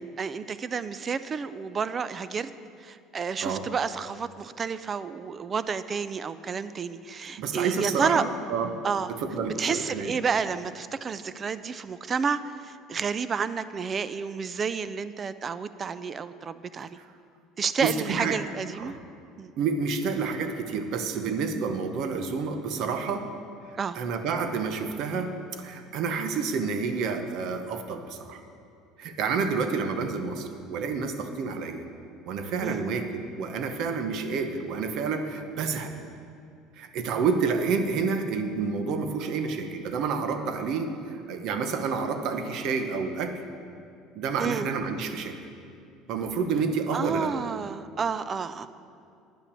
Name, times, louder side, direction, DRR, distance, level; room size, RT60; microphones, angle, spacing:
voice 1, 0.2-2.5 2.8-8.2 8.8-9.1 9.6-17.0 17.6-18.9 19.4-19.5 23.8-24.0 32.6-32.8 44.4-44.7 46.9-48.7, right 6 dB, 25° right, 14 dB, 0.4 m, -30 dB
voice 2, 7.4-8.8 9.1-10.1 17.8-18.4 18.8-19.0 19.6-23.3 23.9-28.4 29.0-31.8 32.3-35.9 36.8-43.3 44.1-45.3 46.1-47.3, right 5 dB, 55° right, 7 dB, 0.9 m, -29 dB
10.0 x 5.9 x 8.2 m, 2.5 s
cardioid pair, 145°, 0 cm